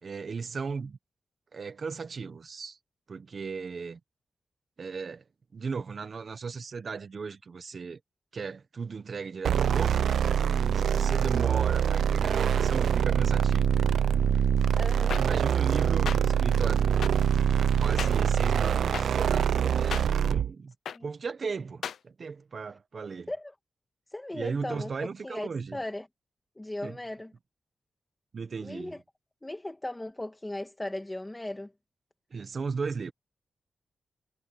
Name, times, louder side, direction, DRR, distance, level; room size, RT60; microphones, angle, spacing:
voice 1, 0.0-1.0 1.5-2.8 3.1-4.0 4.8-5.2 5.5-8.0 8.3-10.1 10.7-13.7 15.2-16.8 17.8-20.7 21.0-23.3 24.3-25.8 26.8-27.0 28.3-29.0 32.3-33.1, right 5 dB, 55° right, 1.3 m, -36 dB
sound 1, 9.4-20.5, right 8 dB, 85° right, 0.7 m, -24 dB
voice 2, 14.8-15.2 20.9-21.1 23.3-23.5 24.1-26.1 26.6-27.3 28.6-29.0 29.4-31.7, left 1 dB, 15° left, 1.8 m, -37 dB
sound 2, 15.1-15.2 16.1-16.2 17.0-17.1 18.0-18.1 18.9-19.0 19.9-20.0 20.9-21.0 21.8-22.0, left 8 dB, 85° left, 0.7 m, -33 dB
cardioid pair, 80°, 0 cm